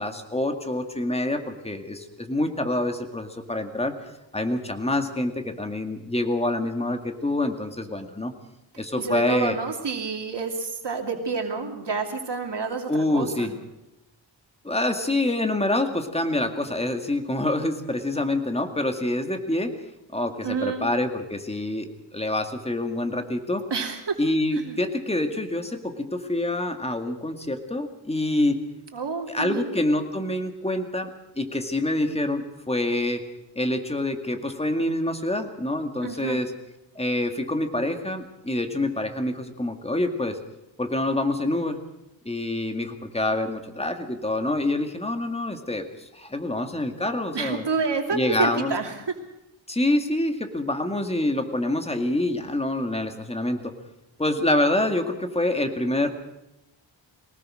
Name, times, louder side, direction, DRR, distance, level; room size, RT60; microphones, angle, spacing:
voice 1, 0.0-4.0 4.3-8.3 8.8-9.6 12.9-13.5 14.6-19.7 20.1-23.6 24.2-28.6 29.3-33.2 33.6-36.5 37.0-40.4 40.8-41.8 42.3-47.6 48.1-48.8 49.7-53.7 54.2-56.1, left 1 dB, 15° left, 6 dB, 2.1 m, -26 dB
voice 2, 9.0-13.5 20.4-20.9 23.7-24.2 24.6-24.8 28.9-29.7 36.0-36.4 47.3-48.9, right 4 dB, 60° right, 3 dB, 2.8 m, -29 dB
23.0 x 19.0 x 6.4 m, 0.90 s
wide cardioid pair, 115°, 46 cm